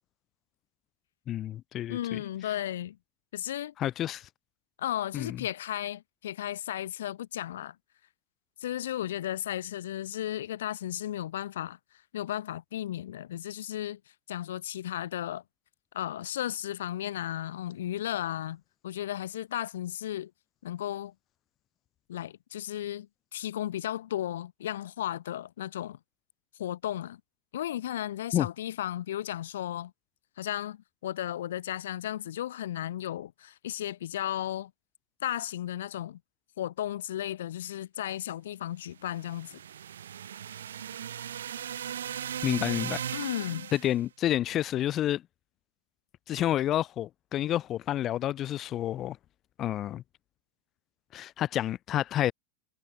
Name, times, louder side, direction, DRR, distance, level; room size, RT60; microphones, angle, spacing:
voice 1, 1.3-2.2 3.8-4.3 5.1-5.4 28.3-28.5 42.4-43.0 43.7-45.2 46.3-49.2 49.6-50.0 51.1-52.3, left 12 dB, 35° left, 0.6 m, -29 dB
voice 2, 1.9-3.0 3.3-3.7 4.8-7.8 8.6-11.8 12.1-14.0 14.3-15.4 15.9-20.3 20.6-21.1 22.1-26.0 26.6-27.2 27.5-29.9 30.4-34.7 35.2-36.2 36.6-39.6 43.1-43.7, left 12 dB, 80° left, 0.6 m, -34 dB
sound 1, 39.0-44.0, right 9 dB, 85° right, 1.2 m, -37 dB
hypercardioid pair, 110°, 0 cm